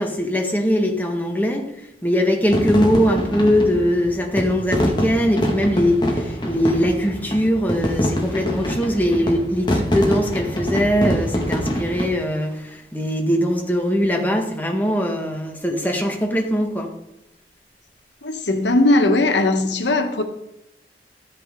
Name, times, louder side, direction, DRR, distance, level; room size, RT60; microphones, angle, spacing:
voice 1, 0.0-1.7 2.0-16.9, equal, 10° left, 1.7 m, -21 dB
sound 1, 2.5-12.1, equal, 25° left, 1.9 m, -24 dB
voice 2, 18.2-20.2, left 2 dB, 90° left, 1.4 m, -18 dB
13.5 x 10.0 x 3.8 m
head